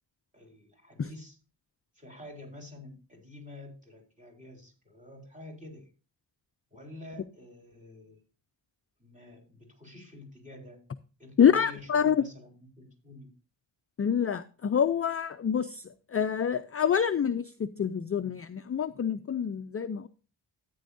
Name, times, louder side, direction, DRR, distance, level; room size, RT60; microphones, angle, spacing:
voice 1, 0.3-1.4 1.9-5.9 6.7-8.2 9.0-10.8 11.2-13.3, left 2 dB, 15° right, 4.2 m, -48 dB
voice 2, 11.4-12.2 14.0-20.1, left 8 dB, 35° left, 0.4 m, -27 dB
13.5 x 9.3 x 2.6 m
wide cardioid pair, 130°, 44 cm